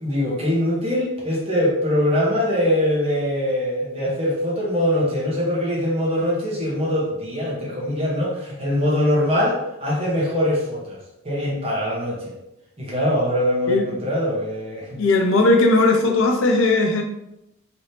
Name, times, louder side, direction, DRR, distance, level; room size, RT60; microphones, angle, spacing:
voice 1, 0.0-11.0 11.2-12.3 12.8-15.0, left 1 dB, 25° right, -5 dB, 1.0 m, -22 dB
voice 2, 15.0-17.0, left 2 dB, 65° left, 3 dB, 0.5 m, -17 dB
3.2 x 2.9 x 2.8 m, 0.87 s
head